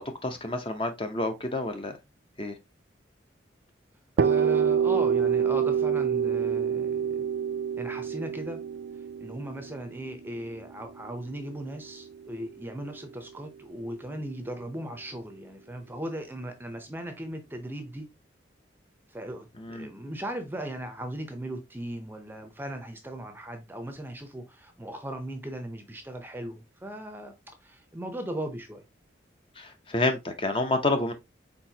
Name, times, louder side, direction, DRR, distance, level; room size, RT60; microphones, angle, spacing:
voice 1, 0.0-2.0 2.4-2.6 19.6-19.9 29.6-31.1, left 2 dB, 30° left, 0.6 m, -29 dB
voice 2, 4.2-7.2 7.7-8.6 9.2-18.1 19.1-27.3 27.6-28.8, right 1 dB, 10° right, 0.6 m, -38 dB
sound 1, 4.2-11.9, right 7 dB, 75° right, 0.4 m, -27 dB
4.5 x 4.2 x 2.7 m
head